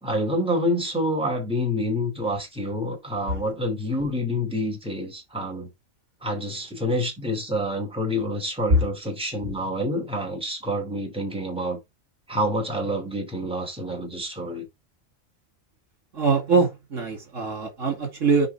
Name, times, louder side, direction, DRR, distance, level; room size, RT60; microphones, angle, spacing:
voice 1, 0.0-5.7 6.2-11.8 12.3-14.7, equal, 5° right, 2.7 m, -27 dB
voice 2, 16.1-18.5, right 4 dB, 70° right, 2.6 m, -23 dB
8.1 x 4.9 x 4.6 m
omnidirectional pair, 1.4 m